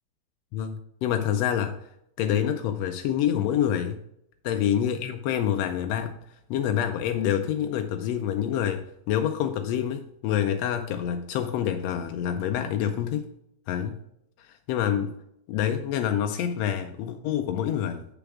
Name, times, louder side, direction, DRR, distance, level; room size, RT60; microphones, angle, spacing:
voice 1, 0.5-1.8 2.2-4.0 4.4-6.2 6.5-13.3 13.7-14.0 14.4-15.2 15.5-18.1, left 9 dB, 80° left, 6 dB, 1.5 m, -27 dB
6.8 x 5.1 x 4.7 m, 0.75 s
omnidirectional pair, 3.4 m